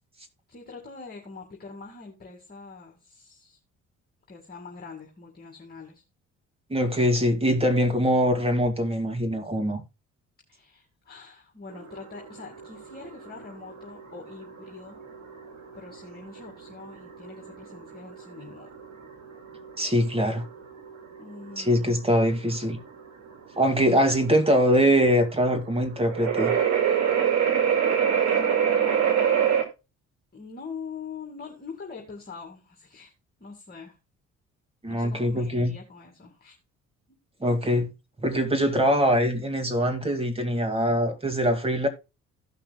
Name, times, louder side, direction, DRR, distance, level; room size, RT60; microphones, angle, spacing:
voice 1, 0.5-3.6 4.3-6.0 10.5-15.0 15.7-18.7 21.2-22.0 28.3-29.6 30.3-33.1 33.4-34.0 34.9-36.6 37.1-37.2, left 4 dB, 30° left, 2.2 m, -43 dB
voice 2, 6.7-9.8 19.8-20.4 21.6-22.8 23.6-26.6 34.8-35.7 37.4-37.9 38.2-41.9, equal, 20° right, 2.2 m, -23 dB
sound 1, 11.7-29.6, right 8 dB, 65° right, 2.3 m, -27 dB
16.0 x 5.8 x 2.3 m
cardioid pair, 90°, 30 cm